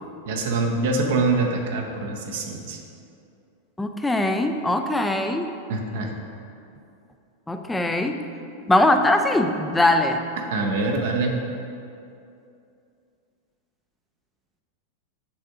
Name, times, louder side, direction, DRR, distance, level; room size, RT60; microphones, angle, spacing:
voice 1, 0.3-2.8 5.7-6.1 10.5-11.3, right 3 dB, 55° right, 2 dB, 0.7 m, -24 dB
voice 2, 3.8-5.5 7.5-8.2 8.7-10.2, left 1 dB, 5° left, 5 dB, 0.4 m, -21 dB
7.1 x 3.5 x 4.9 m, 2.6 s
figure-of-eight pair, 90°, 0 cm